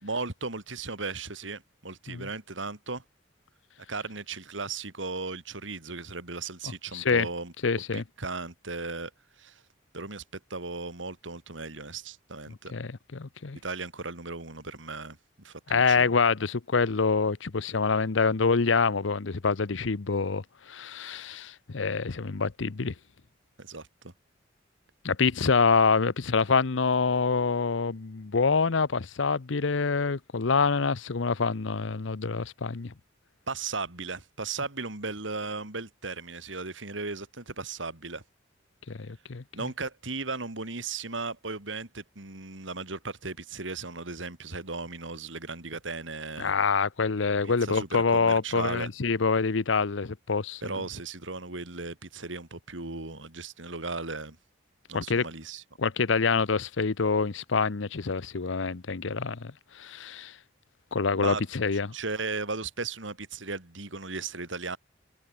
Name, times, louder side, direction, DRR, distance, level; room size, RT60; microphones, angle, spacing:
voice 1, 0.0-3.0 3.9-7.5 7.9-9.1 9.4-9.6 9.9-12.7 13.6-16.1 23.6-24.1 33.5-38.2 39.5-46.5 47.4-48.9 50.6-54.4 54.9-55.6 61.1-61.4 61.9-64.8, right 3 dB, 80° right, 3.5 m, -36 dB
voice 2, 6.9-7.3 7.6-8.0 12.7-13.6 15.7-22.9 25.0-32.9 38.9-39.4 46.4-50.6 54.9-55.3 55.8-60.3 60.9-61.9, left 4 dB, 80° left, 0.8 m, -26 dB
head